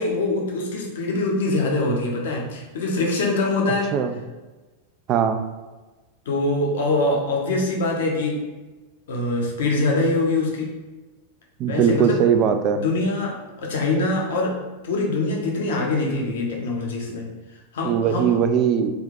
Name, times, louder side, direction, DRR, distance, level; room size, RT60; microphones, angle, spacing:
voice 1, 0.0-3.9 6.3-8.4 9.1-10.7 11.7-12.2 12.7-14.6 14.8-17.3 17.7-18.4, left 2 dB, 60° left, 0 dB, 0.8 m, -23 dB
voice 2, 5.1-5.4 11.6-12.8 17.8-18.9, right 7 dB, 35° right, 8 dB, 0.3 m, -20 dB
3.4 x 2.6 x 3.7 m, 1.2 s
figure-of-eight pair, 90°, 0 cm